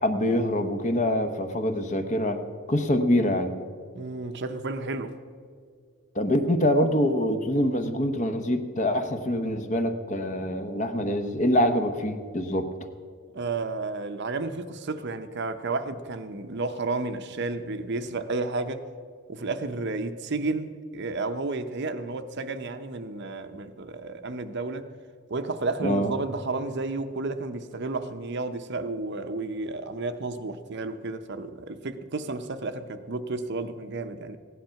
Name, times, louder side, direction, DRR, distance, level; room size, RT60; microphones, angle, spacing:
voice 1, 0.0-2.4 2.7-3.5 6.1-12.7 25.8-26.1, left 1 dB, 35° left, 0.9 m, -25 dB
voice 2, 3.9-5.1 13.3-18.9 19.3-24.9 25.3-34.4, right 3 dB, 50° right, 0.7 m, -32 dB
16.0 x 10.5 x 5.7 m
head